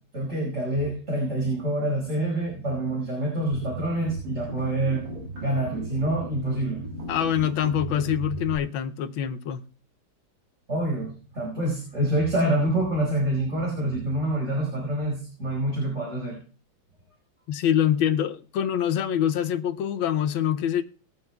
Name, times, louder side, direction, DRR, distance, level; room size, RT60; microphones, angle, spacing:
voice 1, 0.1-5.0 5.4-6.8 10.7-16.4, right 1 dB, 40° right, 5.5 m, -26 dB
sound 1, 3.5-8.6, right 2 dB, 55° right, 2.7 m, -36 dB
voice 2, 7.1-9.6 17.5-20.8, left 9 dB, 85° left, 1.5 m, -25 dB
21.5 x 9.5 x 2.3 m
omnidirectional pair, 2.1 m